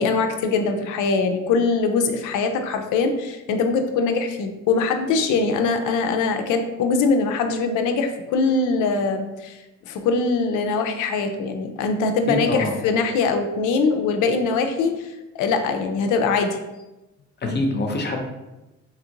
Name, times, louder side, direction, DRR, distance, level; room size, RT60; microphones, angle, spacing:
voice 1, 0.0-9.6 9.9-16.6, left 4 dB, 85° left, 6 dB, 0.4 m, -22 dB
voice 2, 12.3-12.7 17.4-18.2, left 1 dB, 35° left, 2 dB, 0.6 m, -24 dB
2.9 x 2.5 x 2.8 m, 1.0 s
cardioid pair, 90°, 30 cm